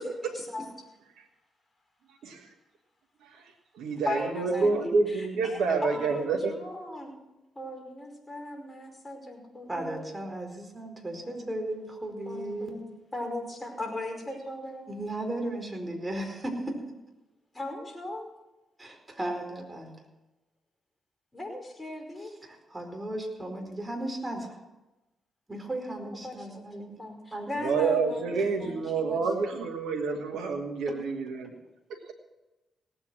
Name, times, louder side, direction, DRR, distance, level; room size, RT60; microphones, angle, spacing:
voice 1, 0.3-0.7 4.0-4.7 5.1-7.2 7.6-10.0 11.1-11.5 12.3-12.8 13.1-14.9 17.5-18.3 21.3-22.3 26.0-26.6 27.0-29.5, left 2 dB, 25° left, 3 dB, 5.1 m, -38 dB
voice 2, 3.8-6.6 27.6-31.5 31.9-32.0, right 4 dB, 80° right, 2 dB, 1.4 m, -28 dB
voice 3, 9.7-12.8 14.9-16.8 18.8-19.9 22.4-24.6 25.5-27.0 27.3-27.5, right 1 dB, 20° right, 3 dB, 4.7 m, -35 dB
18.0 x 8.4 x 6.2 m, 1.0 s
hypercardioid pair, 45°, 0 cm